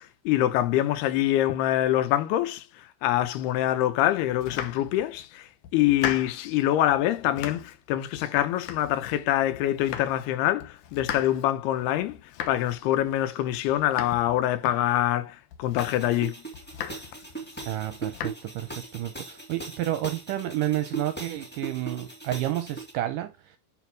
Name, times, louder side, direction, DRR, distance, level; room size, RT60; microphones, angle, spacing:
voice 1, 0.0-2.6 3.0-5.5 5.7-12.2 12.5-16.3, left 13 dB, 85° left, 2.9 m, -25 dB
Domestic sounds home sounds, 4.3-5.3 5.6-6.6 6.9-7.8 8.1-9.3 9.5-10.3 10.6-15.2 15.5-16.2 16.5-17.3 17.6-18.3, left 10 dB, 70° left, 2.0 m, -38 dB
sound 1, 15.8-22.9, right 3 dB, 5° left, 1.5 m, -40 dB
voice 2, 17.7-23.6, right 13 dB, 75° right, 2.0 m, -30 dB
11.0 x 4.3 x 4.6 m
omnidirectional pair, 4.5 m